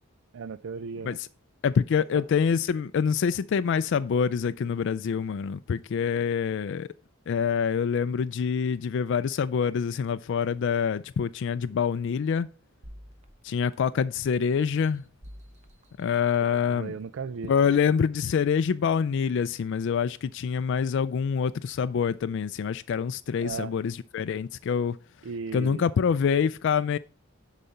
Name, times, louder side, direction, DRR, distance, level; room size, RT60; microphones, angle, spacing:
voice 1, 0.3-1.2 16.5-17.5 23.4-23.7 25.2-25.8, right 5 dB, 65° right, 0.4 m, -36 dB
voice 2, 1.6-6.9 7.3-12.5 13.4-15.0 16.0-16.9 17.5-25.0 25.5-27.0, left 6 dB, 60° left, 0.3 m, -26 dB
sound 1, 12.8-14.1 14.6-16.8 17.3-17.4, equal, 35° right, 0.9 m, -50 dB
10.0 x 4.1 x 5.5 m
head